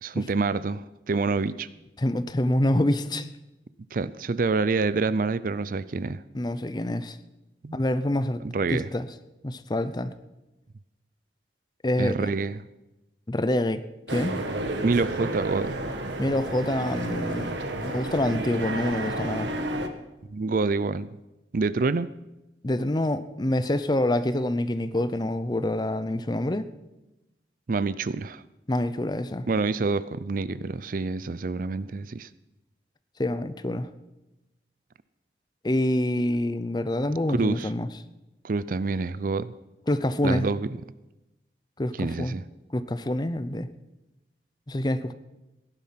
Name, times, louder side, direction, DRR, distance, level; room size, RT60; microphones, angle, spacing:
voice 1, 0.0-1.7 3.9-6.2 7.6-7.8 8.4-8.9 12.0-12.6 14.8-15.8 20.3-21.1 21.5-22.1 27.7-28.4 29.5-32.3 37.3-37.7 38.4-39.5 40.2-40.7 42.0-42.4, right 3 dB, 50° right, 17 dB, 0.5 m, -27 dB
voice 2, 2.0-3.3 6.3-7.2 7.7-8.4 8.7-9.1 9.4-10.1 11.8-12.3 13.3-13.8 14.1-14.4 16.2-17.5 17.8-19.5 22.6-26.7 28.7-29.5 33.2-33.9 35.6-37.9 39.9-40.5 41.8-42.4 42.7-43.7 44.7-45.1, left 1 dB, 25° left, 13 dB, 0.6 m, -26 dB
sound 1, 14.1-19.9, right 1 dB, 85° right, 1.3 m, -31 dB
16.5 x 11.0 x 5.8 m, 0.99 s
head